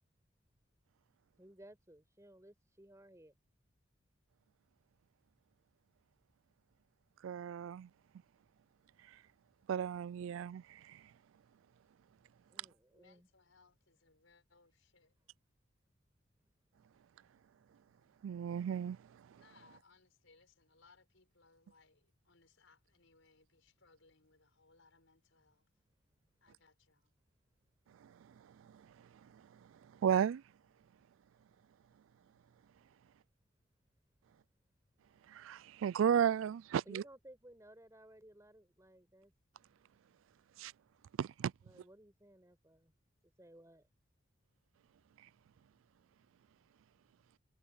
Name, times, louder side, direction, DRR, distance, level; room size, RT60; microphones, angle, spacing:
voice 1, 1.4-3.3 12.5-13.3 36.8-39.3 41.6-42.9 43.4-43.9, right 1 dB, 15° right, 4.9 m, -58 dB
voice 2, 7.2-7.9 9.7-10.6 18.2-19.0 30.0-30.4 35.3-37.0 40.6-40.7 41.2-41.5, right 8 dB, 75° right, 0.3 m, -33 dB
voice 3, 12.9-15.1 19.3-25.7 26.4-27.1, left 4 dB, 75° left, 5.3 m, -67 dB
head